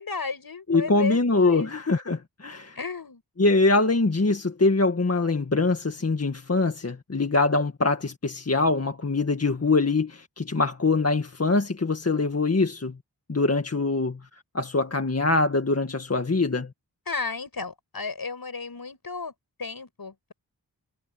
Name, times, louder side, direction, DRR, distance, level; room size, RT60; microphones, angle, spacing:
voice 1, 0.0-1.7 2.8-3.2 17.1-19.3 19.6-20.3, left 4 dB, 65° left, 7.3 m, -33 dB
voice 2, 0.7-2.8 3.4-13.0 13.3-14.2 14.5-16.7, left 3 dB, 40° left, 1.9 m, -23 dB
wide cardioid pair, 85°, 39 cm